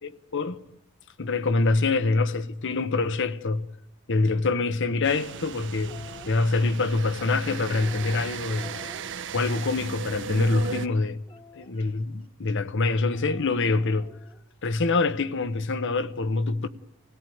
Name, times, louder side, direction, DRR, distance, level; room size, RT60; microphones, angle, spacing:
voice 1, 0.0-0.6 1.2-3.7 4.1-8.7 9.3-11.2 11.6-14.1 14.6-16.7, left 3 dB, 60° left, 0.9 m, -25 dB
sound 1, 5.0-10.9, right 6 dB, 60° right, 0.8 m, -37 dB
sound 2, 5.7-6.3 7.1-10.0 10.4-11.9 13.1-14.4, left 2 dB, 25° left, 1.4 m, -48 dB
25.5 x 17.0 x 9.2 m
head